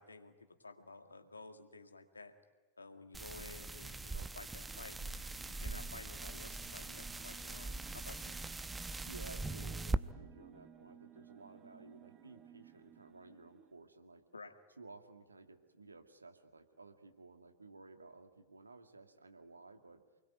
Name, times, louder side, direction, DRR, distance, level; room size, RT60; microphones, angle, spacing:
voice 1, 0.0-2.3 2.8-5.0 5.4-8.4 14.3-14.6, left 3 dB, 80° left, 6 dB, 2.1 m, -53 dB
sound 1, 3.1-10.0, right 3 dB, 10° right, 0.8 m, -41 dB
sound 2, 4.5-13.7, right 9 dB, 30° right, 1.5 m, -59 dB
voice 2, 9.1-14.2 14.8-20.0, right 3 dB, 80° right, 5 dB, 2.2 m, -55 dB
28.5 x 21.5 x 9.3 m, 1.2 s
figure-of-eight pair, 90°, 0 cm